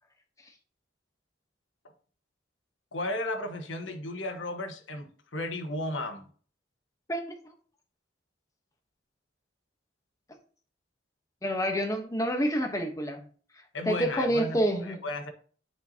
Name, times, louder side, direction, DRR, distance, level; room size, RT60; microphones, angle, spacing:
voice 1, 2.9-6.2 13.7-15.3, left 1 dB, 85° left, 1.3 m, -34 dB
voice 2, 11.4-13.2 13.8-15.0, equal, 15° left, 1.1 m, -27 dB
9.7 x 5.9 x 2.9 m
head